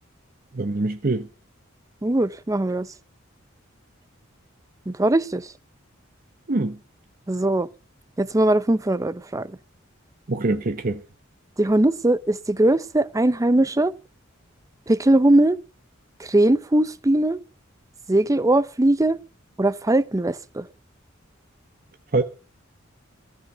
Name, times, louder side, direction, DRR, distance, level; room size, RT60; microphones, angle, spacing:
voice 1, 0.5-1.3 6.5-6.8 10.3-11.0 22.1-22.2, right 2 dB, 45° right, 0.9 m, -24 dB
voice 2, 2.0-2.9 4.9-5.4 7.3-7.7 8.2-9.5 11.6-13.9 14.9-15.6 16.2-17.4 18.1-19.2 19.6-20.7, right 1 dB, 15° right, 0.6 m, -20 dB
14.0 x 6.4 x 7.9 m
head